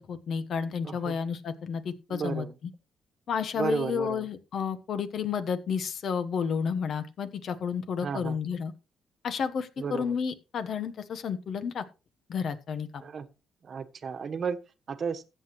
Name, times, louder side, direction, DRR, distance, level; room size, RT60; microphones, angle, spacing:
voice 1, 0.0-2.7 3.3-8.7 9.2-11.8 12.3-13.0, left 6 dB, 60° left, 1.2 m, -31 dB
voice 2, 2.1-2.5 3.6-4.2 8.0-8.4 9.8-10.1 13.0-13.3 13.7-14.6 14.9-15.2, right 6 dB, 50° right, 1.2 m, -33 dB
15.0 x 8.0 x 3.2 m
cardioid pair, 90°, 0 cm